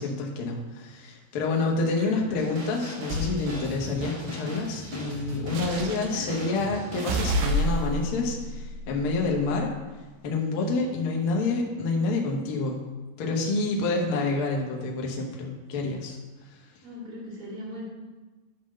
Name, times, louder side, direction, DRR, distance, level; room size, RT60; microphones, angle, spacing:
voice 1, 0.0-9.7 10.2-12.8 13.2-16.2, left 3 dB, 75° left, 0 dB, 1.2 m, -28 dB
voice 2, 2.0-2.4 5.6-6.2 16.8-17.8, equal, 20° right, -5 dB, 1.8 m, -39 dB
sound 1, 2.3-7.6, equal, 40° right, 1.8 m, -39 dB
sound 2, 3.1-3.4 5.5-6.3 7.0-9.6, equal, 80° right, 2.5 m, -29 dB
10.0 x 3.9 x 6.4 m, 1.2 s
omnidirectional pair, 4.4 m